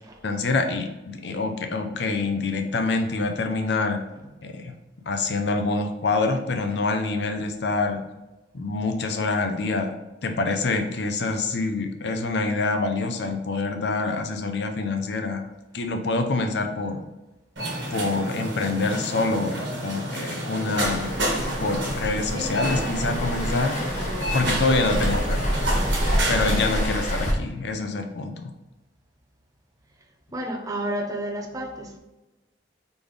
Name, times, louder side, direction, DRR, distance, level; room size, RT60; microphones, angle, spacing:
voice 1, 0.2-4.0 4.4-4.7 5.1-8.0 8.5-9.9 10.2-15.4 15.7-17.0 17.9-21.1 21.4-25.7 26.3-28.5, left 3 dB, 65° left, 5 dB, 0.6 m, -26 dB
sound 1, 17.6-26.9, right 1 dB, 80° right, 1.3 m, -29 dB
Waves surf, 20.7-27.3, equal, 40° left, 1.0 m, -28 dB
voice 2, 30.3-32.0, right 1 dB, 20° right, 1 dB, 0.6 m, -30 dB
4.1 x 3.5 x 3.3 m, 1.1 s
head